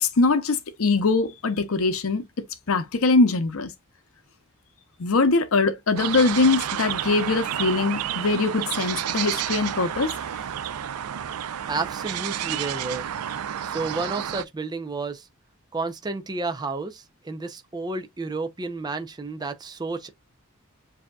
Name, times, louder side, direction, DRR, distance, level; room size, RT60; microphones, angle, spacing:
voice 1, 0.0-2.2 2.7-3.7 5.0-10.1, left 3 dB, 65° left, 0.7 m, -22 dB
sound 1, 6.0-14.4, right 10 dB, 85° right, 0.4 m, -30 dB
voice 2, 11.7-13.0 13.6-15.3 15.7-20.1, right 3 dB, 20° right, 0.5 m, -31 dB
7.5 x 2.8 x 2.2 m
head